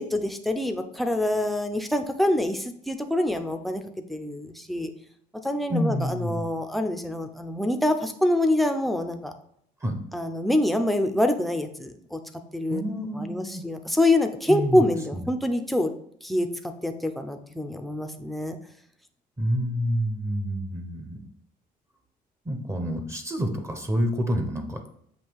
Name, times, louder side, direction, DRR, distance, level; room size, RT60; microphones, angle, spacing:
voice 1, 0.0-3.8 4.1-4.9 5.4-9.3 10.1-12.2 12.5-12.8 13.1-15.9 16.2-18.6, left 1 dB, ahead, 5 dB, 0.6 m, -25 dB
voice 2, 5.7-6.4 9.8-10.0 12.7-13.6 14.5-14.8 15.1-15.3 19.4-21.2 22.4-24.8, equal, 15° right, 5 dB, 1.0 m, -28 dB
7.4 x 2.8 x 4.7 m, 0.69 s
cardioid pair, 110°, 17 cm